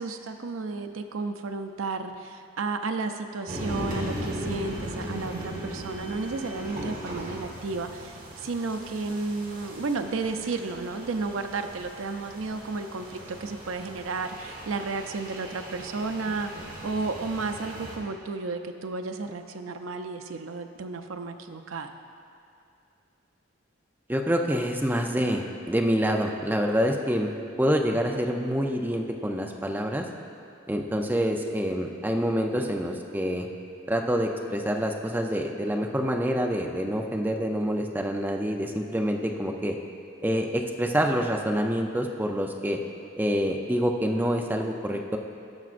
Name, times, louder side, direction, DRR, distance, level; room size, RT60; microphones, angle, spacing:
voice 1, 0.0-21.9, right 3 dB, 90° right, 6 dB, 0.5 m, -33 dB
sound 1, 3.5-18.0, right 1 dB, 40° right, 1.3 m, -38 dB
voice 2, 24.1-27.3 27.6-30.1 30.7-33.5 33.9-39.8 40.2-42.8 43.2-45.2, equal, 10° right, 2 dB, 0.5 m, -26 dB
16.5 x 6.0 x 2.5 m, 2.5 s
head